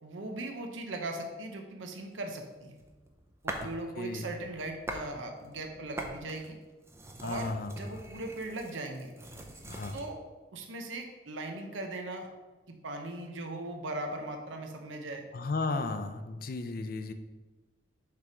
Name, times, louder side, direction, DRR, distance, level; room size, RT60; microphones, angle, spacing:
voice 1, 0.0-2.8 3.4-6.6 7.2-9.1 9.9-10.2 10.5-12.3 12.7-15.2, right 2 dB, 80° right, 4 dB, 0.7 m, -39 dB
sound 1, 2.4-3.8 4.2-5.1 5.4-10.1, right 1 dB, 15° right, 0.5 m, -43 dB
voice 2, 4.0-4.3 7.2-7.7 9.7-10.0 15.3-17.1, left 3 dB, 50° left, 9 dB, 0.4 m, -34 dB
6.8 x 3.4 x 4.9 m, 1.2 s
head